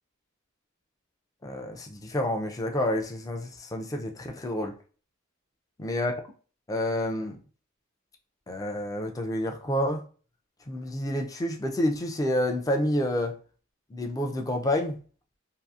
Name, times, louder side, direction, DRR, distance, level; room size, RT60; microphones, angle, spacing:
voice 1, 1.4-4.8 5.8-6.1 6.7-7.4 8.5-10.0 10.7-13.3 13.9-15.0, left 1 dB, 15° left, 0.4 m, -29 dB
2.7 x 2.4 x 2.3 m
head